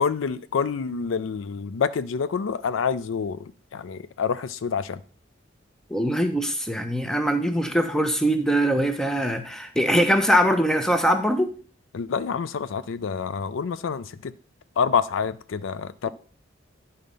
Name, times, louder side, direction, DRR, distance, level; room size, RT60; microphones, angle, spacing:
voice 1, 0.0-5.0 11.9-14.3 14.8-16.1, left 6 dB, 90° left, 0.4 m, -27 dB
voice 2, 5.9-11.5, equal, 5° left, 0.7 m, -22 dB
10.5 x 4.2 x 5.3 m
head